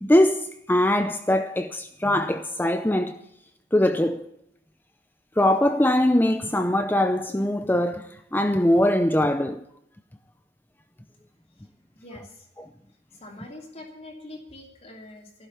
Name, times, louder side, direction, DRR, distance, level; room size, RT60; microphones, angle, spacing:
voice 1, 0.0-3.2 3.7-4.3 5.4-9.6, left 1 dB, 10° left, 0.6 m, -22 dB
voice 2, 11.9-12.5 13.1-15.5, left 1 dB, 35° left, 2.9 m, -44 dB
14.5 x 12.0 x 7.1 m
head